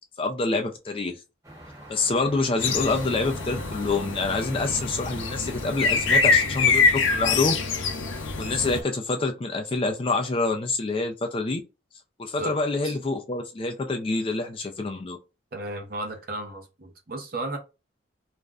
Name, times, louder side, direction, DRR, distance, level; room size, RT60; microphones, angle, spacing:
voice 1, 0.2-1.2 1.9-7.5 8.4-11.6 12.2-15.2, left 3 dB, 30° left, 0.4 m, -27 dB
sound 1, 1.4-6.4, right 1 dB, 15° right, 0.9 m, -45 dB
sound 2, 2.6-8.8, left 4 dB, 80° left, 0.5 m, -25 dB
voice 2, 15.5-17.6, right 2 dB, 50° right, 0.6 m, -34 dB
2.4 x 2.1 x 3.4 m
head